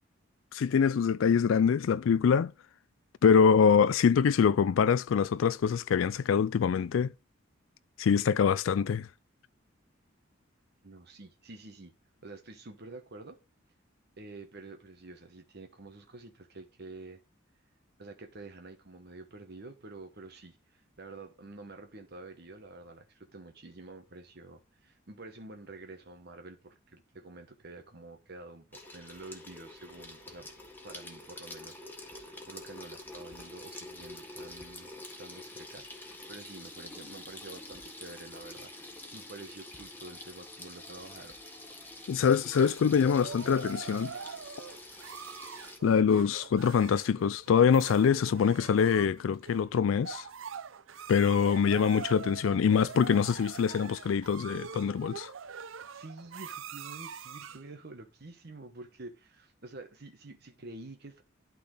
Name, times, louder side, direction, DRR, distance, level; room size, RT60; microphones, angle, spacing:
voice 1, 0.5-2.5 3.2-7.1 8.0-9.1 42.1-44.1 45.8-50.3 51.1-55.3, left 6 dB, 80° left, 0.4 m, -24 dB
voice 2, 10.8-11.9 12.2-13.4 14.2-17.2 18.0-30.5 30.8-34.9 35.2-41.4 41.9-42.1 55.9-61.2, right 2 dB, 55° right, 1.1 m, -48 dB
Water tap faucet / Sink (filling or washing), 28.7-45.8, left 2 dB, 10° left, 1.6 m, -47 dB
sound 1, 42.5-57.7, right 6 dB, 85° right, 0.6 m, -44 dB
12.0 x 4.0 x 3.8 m
head